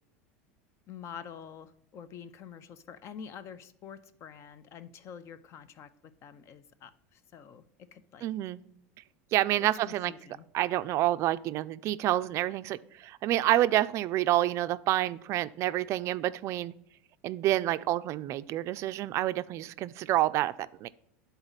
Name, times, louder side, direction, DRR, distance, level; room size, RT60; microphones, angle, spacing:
voice 1, 0.9-8.3 9.5-10.5, left 7 dB, 45° left, 15 dB, 0.6 m, -47 dB
voice 2, 8.2-8.6 9.3-10.1 10.5-16.7 17.2-20.9, right 14 dB, 50° right, 14 dB, 0.3 m, -28 dB
10.5 x 4.0 x 4.0 m, 0.75 s
supercardioid pair, 105°, 7 cm